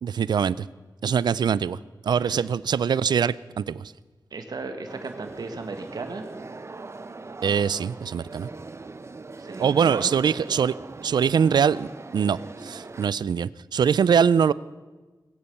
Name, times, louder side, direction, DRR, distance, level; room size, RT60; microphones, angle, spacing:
voice 1, 0.0-0.7 1.0-1.8 2.0-3.8 7.4-8.5 9.6-10.7 11.0-11.9 12.1-14.5, right 7 dB, 90° right, 20 dB, 0.4 m, -23 dB
voice 2, 4.3-6.2 9.4-10.1, right 3 dB, 70° right, 5 dB, 1.6 m, -35 dB
sound 1, 4.9-13.1, right 3 dB, 40° right, 0.7 m, -40 dB
20.5 x 8.6 x 7.1 m, 1.3 s
wide cardioid pair, 80°, 7 cm